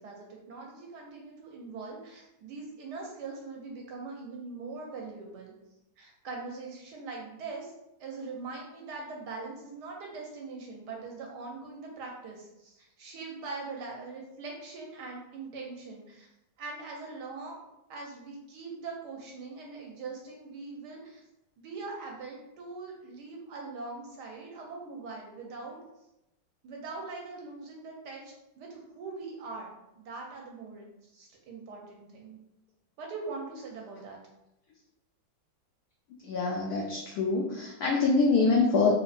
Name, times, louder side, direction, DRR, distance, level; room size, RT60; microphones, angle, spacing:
voice 1, 0.0-5.5 6.0-7.7 8.0-16.3 16.6-17.6 17.9-21.2 21.6-25.8 26.6-32.4 33.0-34.2, right 3 dB, 70° right, 0 dB, 1.0 m, -42 dB
voice 2, 36.2-38.9, left 4 dB, 80° left, -1 dB, 0.8 m, -25 dB
4.3 x 2.6 x 2.4 m, 0.90 s
omnidirectional pair, 2.1 m